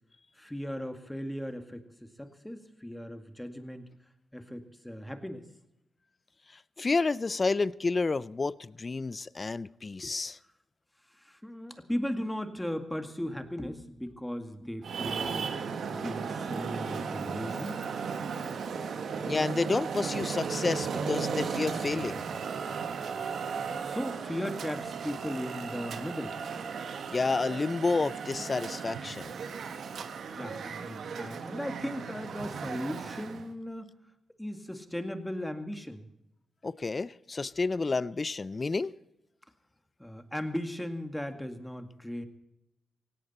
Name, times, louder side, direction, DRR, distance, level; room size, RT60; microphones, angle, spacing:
voice 1, 0.4-3.9 4.3-5.5 11.1-15.5 15.9-17.8 23.8-26.4 30.3-33.9 34.4-36.1 40.0-42.3, equal, 5° left, 2.0 m, -37 dB
voice 2, 6.8-10.4 19.3-22.2 27.1-29.3 36.6-39.0, left 3 dB, 35° left, 0.5 m, -30 dB
Traffic noise roadway noise, 14.8-33.5, right 6 dB, 70° right, 1.4 m, -36 dB
17.5 x 17.5 x 4.3 m
cardioid pair, 65°, 0 cm